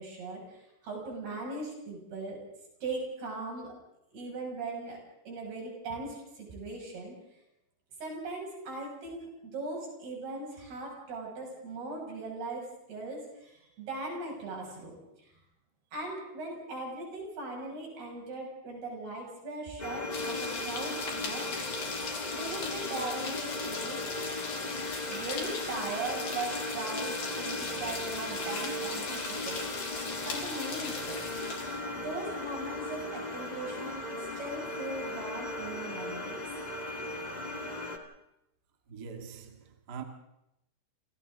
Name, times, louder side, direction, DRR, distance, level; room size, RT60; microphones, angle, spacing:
voice 1, 0.0-2.4 2.8-3.7 4.1-5.0 5.3-7.2 8.0-15.0 15.9-21.4 22.3-24.1 25.1-30.0 30.3-31.3 31.9-34.1 34.3-36.4, right 2 dB, 65° right, 8.7 m, -39 dB
sound 1, 19.8-38.0, left 2 dB, 30° left, 0.8 m, -37 dB
sound 2, 20.1-31.8, left 4 dB, 60° left, 5.6 m, -39 dB
voice 2, 38.9-40.0, right 6 dB, 40° right, 1.4 m, -43 dB
28.5 x 28.5 x 3.9 m
omnidirectional pair, 4.9 m